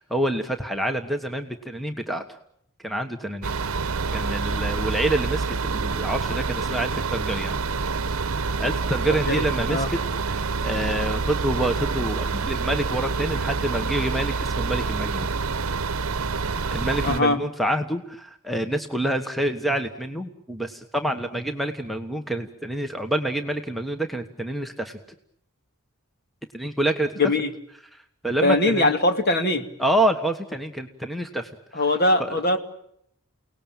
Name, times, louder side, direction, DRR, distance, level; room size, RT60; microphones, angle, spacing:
voice 1, 0.0-2.2 2.8-3.5 4.1-7.5 8.6-10.0 10.3-15.3 16.7-25.0 26.5-27.1 27.9-28.9 29.8-31.5 32.2-32.4, right 1 dB, ahead, 6 dB, 1.3 m, -27 dB
sound 1, 3.4-17.2, right 4 dB, 70° right, 0.9 m, -27 dB
voice 2, 9.3-9.9 17.0-17.4 27.2-27.5 28.4-29.7 31.7-32.6, left 2 dB, 45° left, 6 dB, 2.4 m, -21 dB
29.5 x 19.0 x 8.9 m, 0.74 s
head